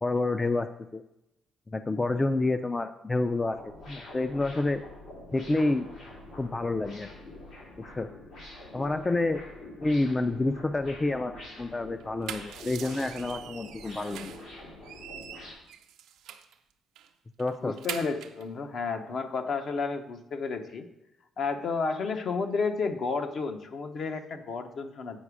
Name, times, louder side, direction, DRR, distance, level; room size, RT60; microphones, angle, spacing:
voice 1, 0.0-1.0 1.7-4.8 5.3-5.9 6.4-7.1 8.0-8.1 8.7-9.4 9.8-14.3 17.4-17.8, left 2 dB, 20° left, 9 dB, 0.3 m, -28 dB
sound 1, 3.5-15.5, left 2 dB, 85° left, 3.0 m, -46 dB
sound 2, 12.0-14.5 14.8-16.6 17.0-17.1 17.4-18.4, right 9 dB, 90° right, 0.5 m, -42 dB
voice 2, 17.6-20.9 21.4-25.2, left 4 dB, 60° left, 6 dB, 0.8 m, -31 dB
8.5 x 5.0 x 4.8 m, 0.88 s
cardioid pair, 90°, 0 cm